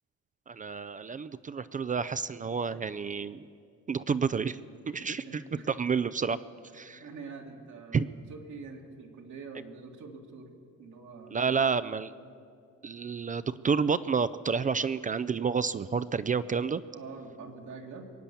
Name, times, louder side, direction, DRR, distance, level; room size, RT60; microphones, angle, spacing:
voice 1, 0.5-3.5 3.9-4.6 4.9-6.4 6.7-7.0 7.9-8.1 11.3-12.1 12.8-16.8, right 5 dB, 25° right, 14 dB, 0.4 m, -29 dB
voice 2, 5.0-5.7 7.0-10.5 10.8-11.7 16.9-18.1, right 4 dB, 75° right, 1 dB, 2.1 m, -45 dB
22.5 x 8.7 x 6.9 m, 2.3 s
cardioid pair, 90°, 30 cm